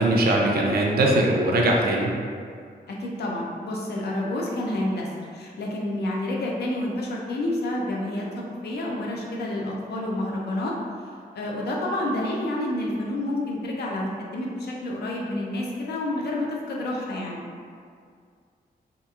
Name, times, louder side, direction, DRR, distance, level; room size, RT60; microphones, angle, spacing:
voice 1, 0.0-2.1, right 1 dB, 70° right, -1 dB, 0.4 m, -21 dB
voice 2, 2.9-10.7 11.3-17.4, left 1 dB, 80° left, -2 dB, 0.5 m, -29 dB
2.9 x 2.3 x 2.3 m, 2.1 s
wide cardioid pair, 175°, 17 cm